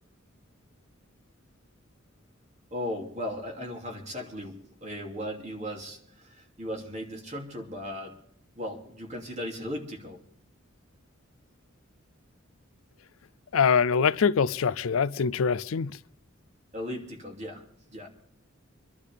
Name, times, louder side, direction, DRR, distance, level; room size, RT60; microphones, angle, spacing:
voice 1, 2.7-8.2 8.5-10.2 16.7-17.6 17.9-18.1, left 1 dB, 35° right, 2.9 m, -37 dB
voice 2, 13.5-16.0, left 6 dB, 90° left, 0.5 m, -24 dB
26.0 x 12.0 x 3.5 m
head